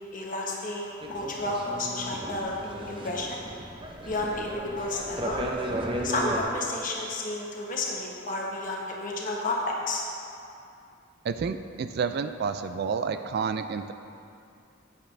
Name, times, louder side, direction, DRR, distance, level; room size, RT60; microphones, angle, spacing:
voice 1, 0.1-2.5 2.9-3.4 4.0-5.4 6.0-10.0, left 2 dB, 45° left, -1 dB, 1.1 m, -31 dB
sound 1, 1.0-6.4, right 1 dB, 25° right, 0.7 m, -35 dB
voice 2, 11.2-13.9, right 5 dB, 55° right, 10 dB, 0.3 m, -30 dB
8.5 x 8.4 x 3.3 m, 2.5 s
head